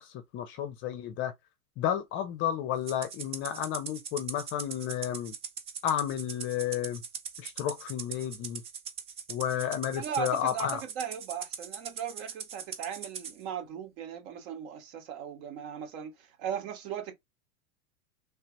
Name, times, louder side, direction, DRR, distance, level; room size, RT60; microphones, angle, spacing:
voice 1, 0.0-1.3 1.8-5.3 5.8-7.0 7.4-8.6 9.3-10.8, left 10 dB, 30° left, 0.6 m, -32 dB
Rattle (instrument), 2.9-13.3, right 7 dB, 15° right, 0.4 m, -41 dB
voice 2, 9.9-10.7 11.0-16.1 16.4-17.1, right 8 dB, 50° right, 1.6 m, -37 dB
3.3 x 2.8 x 4.5 m
hypercardioid pair, 115°, 42 cm